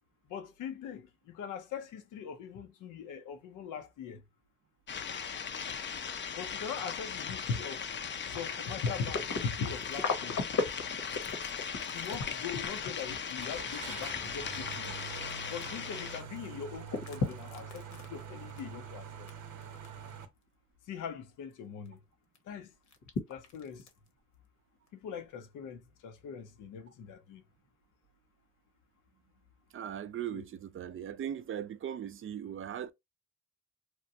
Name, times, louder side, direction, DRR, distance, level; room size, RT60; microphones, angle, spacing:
voice 1, 0.3-4.2 6.3-7.9 8.2-10.4 11.9-15.0 15.5-19.3 20.9-22.0 22.4-22.7 23.3-23.9 24.9-27.4 30.3-30.4, left 6 dB, 85° left, 0.6 m, -41 dB
sound 1, 4.9-16.2, left 7 dB, 40° left, 0.5 m, -38 dB
sound 2, 8.1-16.1 16.4-19.3 19.6-20.1 20.5-20.6 21.8-21.9 22.3-22.4 22.9-24.1 24.9-25.0, left 4 dB, 65° left, 0.9 m, -37 dB
Car / Engine starting, 13.4-20.3, right 7 dB, 85° right, 0.7 m, -45 dB
voice 2, 29.7-32.9, right 9 dB, 45° right, 0.4 m, -39 dB
3.0 x 2.1 x 2.6 m
cardioid pair, 70°, 30 cm